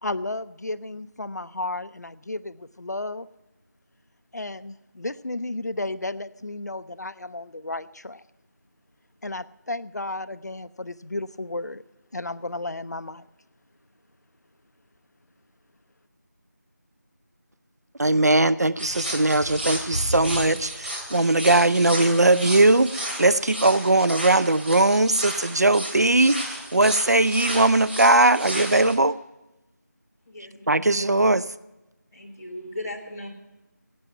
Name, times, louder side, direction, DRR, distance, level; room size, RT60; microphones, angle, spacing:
voice 1, 0.0-3.3 4.3-8.2 9.2-11.8 12.1-13.2, left 2 dB, 65° left, 14 dB, 0.5 m, -33 dB
voice 2, 18.0-29.1 30.7-31.4, right 2 dB, 60° right, 16 dB, 0.5 m, -20 dB
sound 1, 18.8-29.0, right 1 dB, 35° right, 2.7 m, -33 dB
voice 3, 30.3-30.6 32.1-33.3, left 1 dB, 10° left, -9 dB, 1.7 m, -37 dB
17.5 x 9.2 x 5.8 m, 1.0 s
figure-of-eight pair, 180°, 10 cm